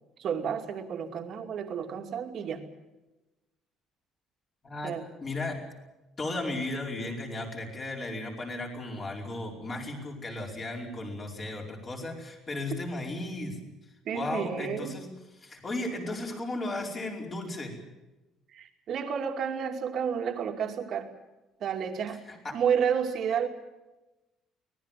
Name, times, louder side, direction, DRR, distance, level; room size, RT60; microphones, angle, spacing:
voice 1, 0.2-2.6 4.8-5.1 14.0-15.0 18.5-21.1 21.6-22.2 22.5-23.5, right 7 dB, 45° right, 5 dB, 2.6 m, -31 dB
voice 2, 4.6-5.0 5.2-5.6 6.2-13.6 14.1-15.1 15.4-17.7 22.3-22.6, left 2 dB, 25° left, 1 dB, 5.0 m, -35 dB
24.5 x 19.0 x 7.6 m, 1.0 s
cardioid pair, 160°, 0 cm